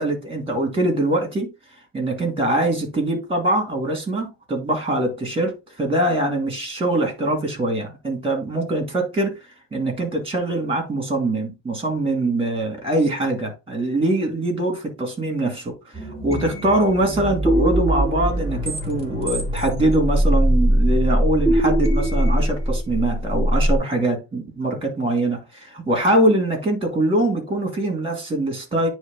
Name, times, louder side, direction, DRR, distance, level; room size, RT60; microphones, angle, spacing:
voice 1, 0.0-1.5 1.9-9.3 9.7-28.9, right 1 dB, 10° right, 2.5 m, -23 dB
sound 1, 15.9-23.8, right 1 dB, 15° left, 1.8 m, -21 dB
9.5 x 3.3 x 3.7 m
cardioid pair, 155°, 43 cm